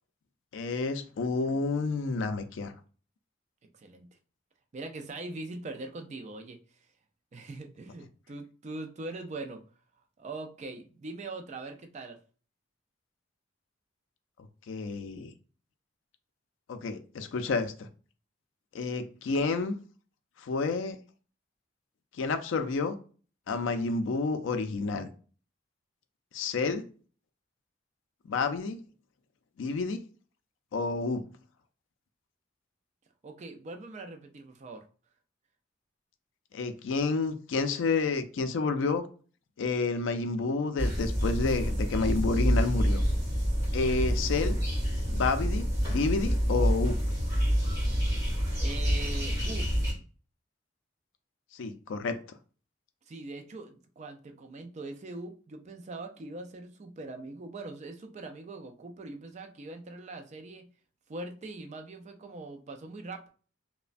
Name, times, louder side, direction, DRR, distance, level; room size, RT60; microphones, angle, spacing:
voice 1, 0.5-2.7 14.7-15.3 16.7-17.9 18.7-19.8 20.4-21.0 22.2-23.0 23.5-25.1 26.3-26.8 28.3-28.8 29.6-30.0 30.7-31.2 36.5-39.1 39.6-43.0 43.7-44.6 45.1-47.0 51.5-52.2, left 4 dB, 70° left, 0.4 m, -29 dB
voice 2, 4.7-6.6 7.3-9.6 10.2-12.2 33.2-34.8 48.6-49.7 53.1-60.7 61.1-63.3, right 2 dB, 35° right, 0.4 m, -42 dB
sound 1, 40.8-49.9, equal, 15° right, 1.5 m, -27 dB
3.1 x 2.1 x 2.5 m
head